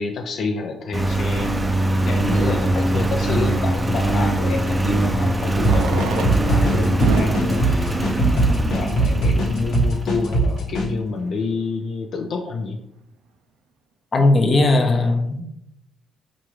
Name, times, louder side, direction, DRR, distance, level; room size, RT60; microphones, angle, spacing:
voice 1, 0.0-1.5 2.0-7.9 8.3-12.8, left 4 dB, 65° left, 2 dB, 0.4 m, -28 dB
Engine, 0.9-10.4, right 1 dB, 20° right, 0.4 m, -22 dB
Fireworks, 2.0-2.1 4.4-4.5 5.5-9.3 10.0-10.1 10.3-10.4 10.6-10.7 11.3-11.5, right 4 dB, 90° right, 0.4 m, -31 dB
sound 1, 5.6-10.9, right 2 dB, 80° left, 1.1 m, -20 dB
voice 2, 14.1-15.4, left 2 dB, 40° left, 4 dB, 0.7 m, -17 dB
4.5 x 2.5 x 3.1 m, 0.76 s
cardioid pair, 90°, 0 cm